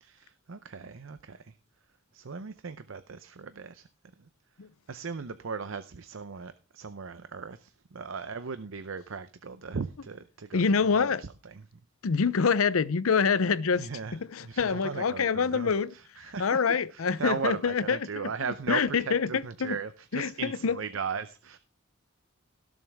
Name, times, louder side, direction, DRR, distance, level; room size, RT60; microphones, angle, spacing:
voice 1, 0.0-1.4 2.1-3.8 4.9-10.6 10.9-11.6 13.8-14.1 14.4-15.7 16.2-16.6 16.9-21.6, right 5 dB, 65° right, 0.7 m, -37 dB
voice 2, 10.5-11.2 12.0-15.9 16.4-18.3 18.7-19.8 20.1-20.8, left 5 dB, 85° left, 0.6 m, -26 dB
17.5 x 7.3 x 3.5 m
head